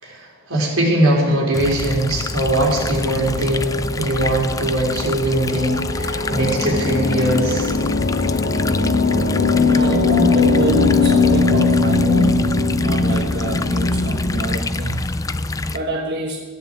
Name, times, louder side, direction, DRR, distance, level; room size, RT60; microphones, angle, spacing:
voice 1, 0.0-7.8, right 1 dB, 80° right, -2 dB, 4.1 m, -20 dB
sound 1, 1.5-15.8, left 2 dB, 15° left, 0.3 m, -27 dB
sound 2, 2.8-14.6, left 3 dB, 50° left, 0.8 m, -20 dB
voice 2, 9.1-12.5 12.8-15.0 15.7-16.4, right 2 dB, 50° right, -1 dB, 1.3 m, -27 dB
14.0 x 9.3 x 7.8 m, 1.5 s
head